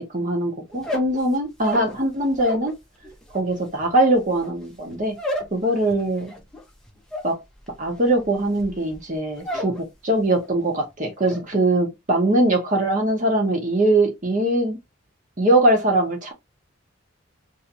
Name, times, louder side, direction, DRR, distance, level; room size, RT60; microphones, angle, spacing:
voice 1, 0.0-2.7 3.3-5.2 5.5-6.3 7.2-7.4 7.8-14.8 15.4-16.3, right 1 dB, 40° right, 1.0 m, -21 dB
sound 1, 0.7-2.7 3.0-9.8 10.1-10.6 10.9-11.4, equal, 5° left, 0.7 m, -33 dB
3.2 x 2.8 x 2.8 m
head